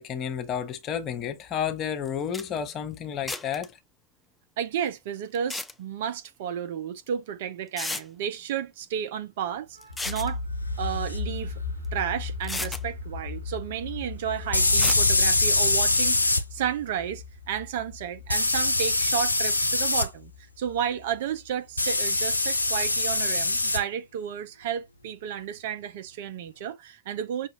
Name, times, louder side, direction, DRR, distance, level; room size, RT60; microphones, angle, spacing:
voice 1, 0.0-3.7, left 8 dB, 35° left, 0.9 m, -31 dB
sound 1, 2.0-2.1 2.3-2.4 3.3-3.7 5.3-5.7 7.1-7.2 7.8-8.0 9.8-10.3 11.8-11.9 12.4-12.8 14.8-15.0, left 2 dB, 5° left, 0.5 m, -33 dB
voice 2, 4.6-10.4 10.8-11.6 11.9-20.3 20.6-27.5, right 9 dB, 55° right, 0.7 m, -32 dB
sound 2, 9.9-21.7, left 4 dB, 85° right, 1.7 m, -37 dB
sound 3, 11.1-11.2 14.5-16.4 18.3-20.1 21.8-23.8, left 2 dB, 80° left, 0.5 m, -23 dB
5.8 x 2.5 x 3.1 m
figure-of-eight pair, 90°, 0 cm